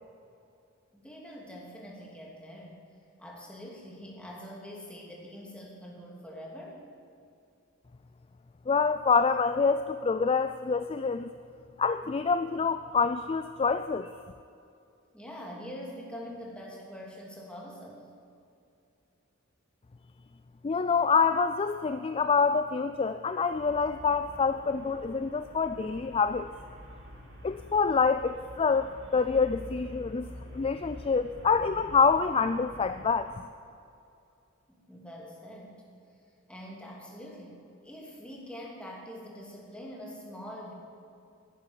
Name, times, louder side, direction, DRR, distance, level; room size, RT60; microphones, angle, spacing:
voice 1, 0.9-2.8 3.2-6.8 15.1-18.1 34.7-35.7 36.5-40.7, equal, 5° left, -3 dB, 3.0 m, -44 dB
voice 2, 8.7-11.3 11.8-14.1 20.6-26.5 27.4-30.3 30.5-33.3, left 5 dB, 30° left, 10 dB, 0.4 m, -26 dB
Traffic noise roadway noise, 23.5-33.3, equal, 55° right, 4.7 m, -48 dB
11.0 x 11.0 x 10.0 m, 2.6 s
head